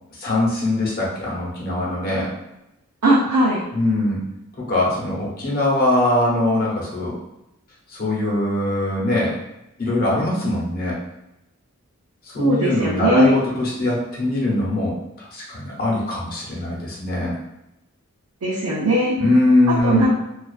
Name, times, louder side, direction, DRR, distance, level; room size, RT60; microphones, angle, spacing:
voice 1, 0.2-2.3 3.7-4.2 4.6-7.2 7.9-9.4 9.8-11.0 12.2-17.4 19.2-20.1, left 1 dB, 40° left, -5 dB, 0.7 m, -21 dB
voice 2, 3.0-3.7 12.4-13.4 18.4-19.2 19.7-20.1, right 1 dB, 80° right, -8 dB, 0.5 m, -19 dB
2.4 x 2.3 x 2.4 m, 0.91 s
head